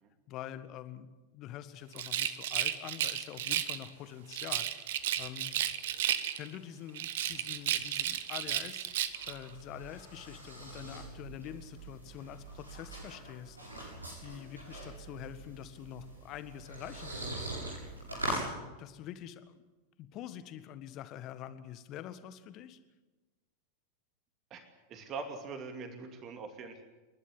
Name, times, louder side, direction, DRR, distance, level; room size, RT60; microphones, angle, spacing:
voice 1, 0.3-4.7 5.2-5.5 6.4-8.9 9.3-13.6 14.2-17.9 18.3-19.6 20.0-22.8, left 11 dB, 35° left, 12 dB, 1.6 m, -46 dB
Rattle, 1.9-3.9 4.3-6.6 6.9-9.4, right 11 dB, 55° right, 1.2 m, -33 dB
sound 1, 8.9-18.5, right 1 dB, 80° right, 7.7 m, -42 dB
voice 2, 24.9-26.8, right 4 dB, 30° right, 6 dB, 2.6 m, -42 dB
29.0 x 12.0 x 10.0 m, 1.2 s
figure-of-eight pair, 90°, 0 cm